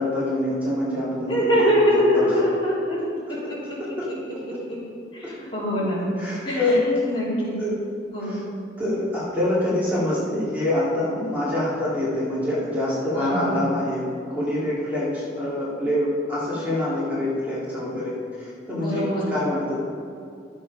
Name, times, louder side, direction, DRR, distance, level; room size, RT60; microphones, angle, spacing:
voice 1, 0.0-2.2 4.0-4.1 5.2-5.3 6.2-7.0 7.6-7.8 8.2-8.4 8.8-14.0 14.3-19.8, left 1 dB, 10° right, -9 dB, 2.3 m, -25 dB
voice 2, 1.3-3.0 3.3-3.4 4.7-4.8 5.1-6.1 6.4-7.6 8.1-8.4 13.1-13.5 18.7-19.3, equal, 25° left, -8 dB, 3.1 m, -23 dB
11.5 x 7.7 x 5.3 m, 2.5 s
head